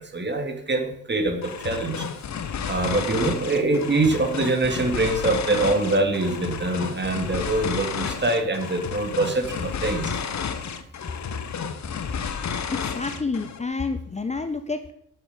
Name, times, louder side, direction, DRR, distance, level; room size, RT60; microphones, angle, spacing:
voice 1, 0.0-2.1 2.7-10.1, right 2 dB, 25° right, 5 dB, 2.4 m, -24 dB
sound 1, 1.4-13.6, left 7 dB, 40° left, 1.3 m, -31 dB
voice 2, 12.7-14.9, left 4 dB, 15° left, 9 dB, 0.8 m, -29 dB
12.5 x 8.9 x 5.2 m, 0.71 s
figure-of-eight pair, 40°, 41 cm